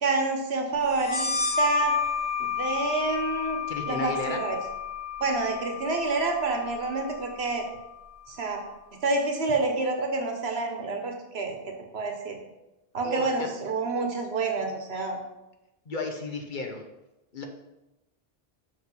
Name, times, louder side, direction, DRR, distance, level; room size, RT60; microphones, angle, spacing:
voice 1, 0.0-1.3 1.6-1.9 2.4-3.6 3.9-4.6 5.2-7.7 8.3-8.6 9.0-11.6 11.9-12.4 12.9-15.2, right 3 dB, 80° right, 3 dB, 1.3 m, -28 dB
sound 1, 1.0-8.3, left 5 dB, 70° left, 1.8 m, -31 dB
voice 2, 3.7-4.4 13.0-13.5 15.9-16.8 17.3-17.4, left 3 dB, 50° left, 3 dB, 1.0 m, -33 dB
6.0 x 5.0 x 5.4 m, 0.97 s
omnidirectional pair, 1.1 m